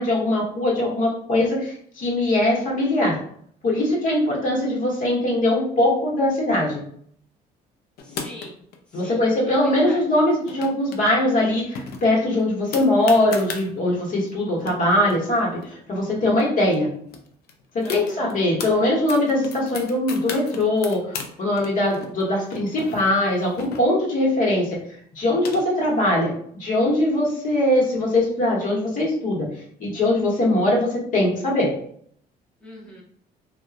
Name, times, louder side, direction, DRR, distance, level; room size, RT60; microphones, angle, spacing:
voice 1, 0.0-3.2 3.6-6.8 8.9-16.9 17.7-24.8 25.1-29.5 29.8-31.7, left 1 dB, 50° left, -3 dB, 1.1 m, -21 dB
sound 1, 8.0-8.8 10.2-11.0 11.3-11.4 11.8-13.7 14.3-14.4 14.6-16.4 16.7-16.8 17.1-18.7 19.1-21.3 21.6-24.2 25.0-26.0, left 5 dB, 65° left, 0.5 m, -36 dB
voice 2, 8.0-8.6 8.9-10.0 17.8-18.4 32.6-33.0, left 1 dB, 5° left, -6 dB, 0.8 m, -41 dB
2.7 x 2.2 x 2.4 m, 0.64 s
cardioid pair, 110°, 17 cm